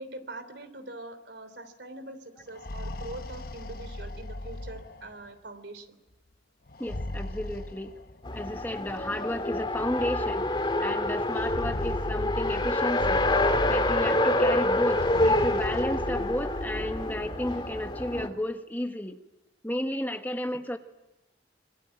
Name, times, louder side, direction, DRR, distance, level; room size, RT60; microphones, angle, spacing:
voice 1, 0.0-6.0 7.3-7.4, right 2 dB, 70° right, 10 dB, 3.2 m, -43 dB
sound 1, 2.4-5.3 6.7-8.4 9.4-9.5 9.8-9.9 11.2-14.3 14.9-17.5, left 1 dB, 55° left, 1.1 m, -37 dB
voice 2, 6.8-8.0 8.3-13.2 13.6-19.2 19.6-20.8, equal, 10° left, 6 dB, 1.3 m, -32 dB
Race car auto racing, 8.2-18.3, left 1 dB, 25° left, 2.0 m, -27 dB
25.5 x 24.5 x 8.8 m, 1.0 s
head